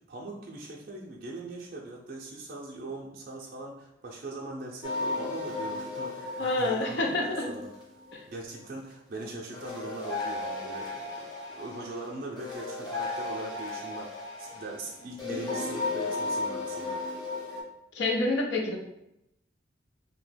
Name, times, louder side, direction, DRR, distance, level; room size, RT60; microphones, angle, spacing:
voice 1, 0.1-7.7 8.3-17.0, right 2 dB, 50° right, -3 dB, 0.4 m, -41 dB
sound 1, 4.8-8.3 9.5-17.6, left 3 dB, 25° left, 0.7 m, -35 dB
voice 2, 6.4-7.5 8.1-8.2 17.9-18.8, left 2 dB, 65° left, 2 dB, 0.5 m, -27 dB
2.8 x 2.1 x 3.2 m, 0.84 s
head